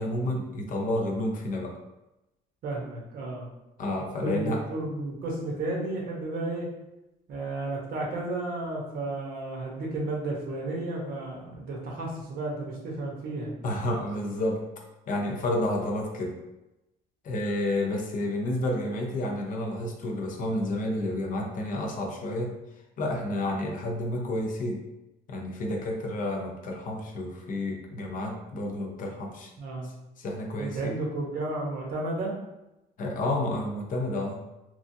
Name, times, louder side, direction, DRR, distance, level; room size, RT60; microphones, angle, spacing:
voice 1, 0.0-1.8 3.8-4.6 13.6-14.7 15.1-16.3 17.2-22.6 23.0-24.8 25.3-29.5 30.2-30.9 33.0-34.4, left 1 dB, 50° left, 1 dB, 0.6 m, -30 dB
voice 2, 2.6-3.5 4.2-6.7 7.3-13.5 29.6-29.9 30.6-32.4, right 2 dB, 65° right, -2 dB, 1.0 m, -32 dB
3.0 x 2.4 x 2.7 m, 0.94 s
cardioid pair, 110°, 17 cm